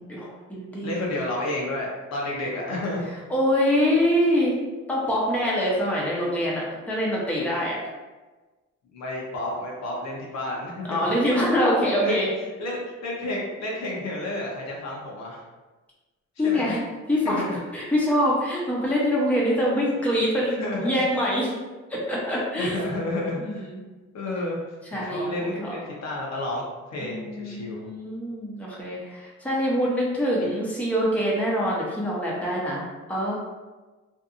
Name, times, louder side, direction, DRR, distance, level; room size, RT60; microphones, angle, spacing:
voice 1, 0.0-1.1 3.3-4.5 4.9-7.7 10.9-12.3 16.4-16.8 17.1-17.4 17.7-21.5 21.9-22.8 23.4-23.8 24.9-25.7 27.0-32.8 33.1-33.3, equal, 5° left, -5 dB, 0.7 m, -24 dB
voice 2, 0.8-3.1 8.9-11.1 12.0-15.4 16.4-16.8 17.2-17.6 20.0-20.1 20.5-21.0 22.6-23.7 24.1-24.6 24.9-26.6 26.9-27.9 30.4-30.5, left 1 dB, 60° left, -3 dB, 0.8 m, -31 dB
2.7 x 2.5 x 2.4 m, 1.2 s
cardioid pair, 90°, 30 cm